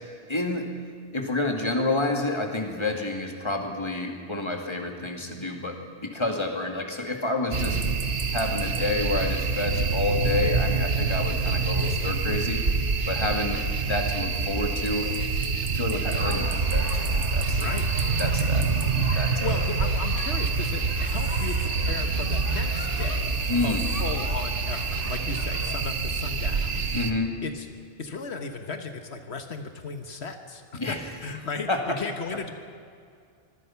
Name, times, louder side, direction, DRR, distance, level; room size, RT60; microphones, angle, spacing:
voice 1, 0.3-0.7 1.1-7.8 8.3-12.6 13.1-15.1 15.7-17.6 18.2-18.7 19.1-19.5 23.5-23.9 26.9-27.4 30.7-31.0 31.7-32.0, left 2 dB, 25° left, 3 dB, 2.3 m, -29 dB
sound 1, 7.5-27.1, right 4 dB, 70° right, 1.5 m, -26 dB
sound 2, 16.2-25.8, left 3 dB, 55° left, 1.5 m, -40 dB
voice 2, 17.6-18.0 19.4-23.3 23.6-26.9 27.4-27.7 28.0-31.0 31.2-32.5, left 4 dB, 80° left, 6 dB, 1.6 m, -35 dB
24.5 x 22.5 x 5.8 m, 2.3 s
omnidirectional pair, 1.1 m